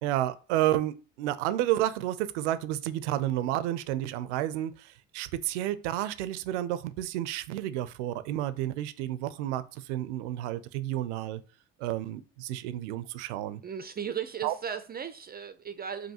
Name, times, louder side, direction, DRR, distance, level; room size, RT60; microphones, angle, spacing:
voice 1, 0.0-11.4 11.8-13.6 14.4-14.6, right 13 dB, 90° right, 0.5 m, -31 dB
voice 2, 13.6-16.1, right 8 dB, 30° right, 0.4 m, -36 dB
5.4 x 2.7 x 2.8 m
supercardioid pair, 75°, 34 cm